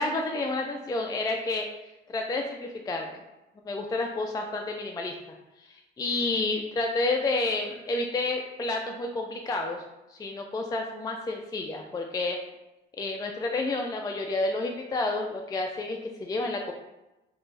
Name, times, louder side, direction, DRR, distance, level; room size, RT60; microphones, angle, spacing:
voice 1, 0.0-1.7 2.1-3.2 3.6-5.1 5.6-9.8 10.1-12.4 13.0-16.7, left 2 dB, 20° left, 2 dB, 0.3 m, -30 dB
3.2 x 2.5 x 3.2 m, 0.98 s
cardioid pair, 90°, 20 cm